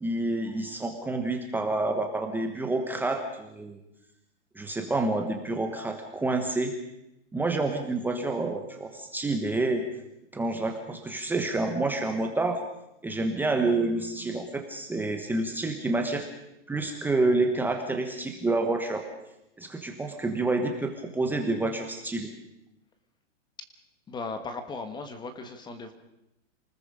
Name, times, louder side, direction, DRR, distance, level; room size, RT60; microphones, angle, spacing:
voice 1, 0.0-3.8 4.5-6.7 7.3-9.8 10.3-12.6 13.0-16.3 16.7-19.0 19.6-22.3, right 2 dB, 5° right, 4 dB, 1.2 m, -28 dB
voice 2, 24.1-25.9, left 3 dB, 10° left, 8 dB, 1.4 m, -37 dB
28.5 x 20.0 x 5.1 m, 0.86 s
hypercardioid pair, 150°, 36 cm